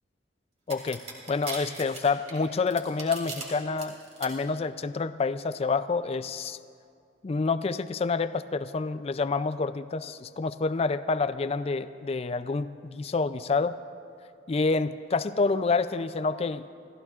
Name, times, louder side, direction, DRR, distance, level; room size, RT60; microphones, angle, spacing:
voice 1, 0.7-1.0 1.3-3.9 4.2-6.6 7.2-13.8 14.5-16.6, left 4 dB, 35° left, 13 dB, 0.3 m, -28 dB
sound 1, 0.7-3.4 3.8-4.3, right 3 dB, 35° right, 2.7 m, -38 dB
29.5 x 15.5 x 2.4 m, 2.4 s
head